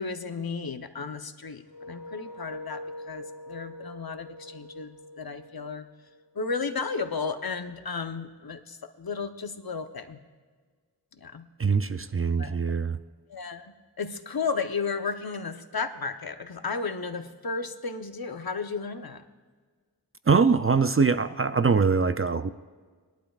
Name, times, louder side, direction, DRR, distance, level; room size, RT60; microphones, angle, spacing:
voice 1, 0.0-5.9 6.3-10.2 11.1-11.5 12.4-12.6 13.3-19.2, left 4 dB, 65° left, 8 dB, 0.8 m, -34 dB
sound 1, 1.6-6.5, left 1 dB, 85° right, 3.9 m, -43 dB
voice 2, 11.6-13.0 20.3-22.5, right 5 dB, 35° right, 12 dB, 0.4 m, -23 dB
21.0 x 12.0 x 2.4 m, 1.5 s
wide cardioid pair, 45°, 40 cm